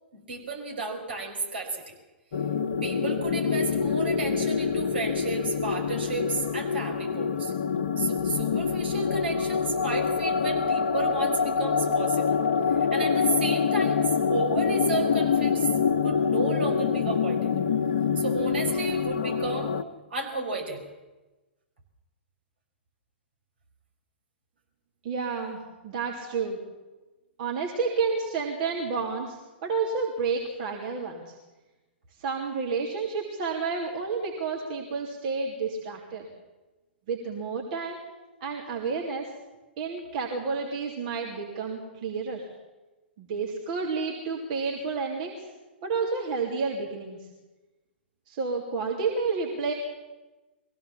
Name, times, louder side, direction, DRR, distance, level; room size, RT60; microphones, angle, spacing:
voice 1, 0.1-1.8 2.8-7.5 8.0-12.4 12.7-14.0 14.3-15.7 16.0-17.5 18.2-19.7 20.1-20.8, right 3 dB, 65° right, 2 dB, 5.6 m, -32 dB
sound 1, 2.3-19.8, left 6 dB, 55° left, 1.2 m, -26 dB
voice 2, 25.0-26.6 27.4-31.3 32.1-36.3 37.1-38.0 38.4-39.3 39.8-42.5 43.2-45.5 45.8-47.3 48.3-49.7, right 4 dB, 45° right, 0 dB, 3.1 m, -30 dB
22.5 x 16.5 x 7.3 m, 1.1 s
figure-of-eight pair, 110°, 6 cm